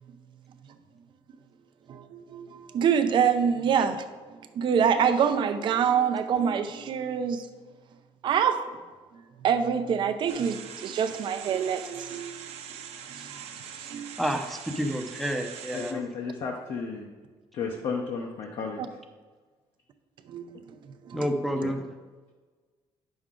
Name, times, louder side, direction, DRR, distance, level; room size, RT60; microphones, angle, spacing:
voice 1, 1.9-4.0 4.5-7.5 8.2-8.7 9.4-12.3 12.8-13.4 13.8-14.1 18.8-18.9 20.3-20.5 21.1-21.3, right 7 dB, 50° right, 8 dB, 0.6 m, -26 dB
sound 1, 10.3-15.9, right 8 dB, 80° right, 0.8 m, -42 dB
voice 2, 14.2-16.0 21.1-21.8, equal, ahead, 5 dB, 0.6 m, -29 dB
voice 3, 15.7-17.0 17.5-18.8 21.6-21.7, left 5 dB, 60° left, 1 dB, 0.8 m, -33 dB
9.4 x 6.2 x 3.8 m, 1.4 s
cardioid pair, 170°, 11 cm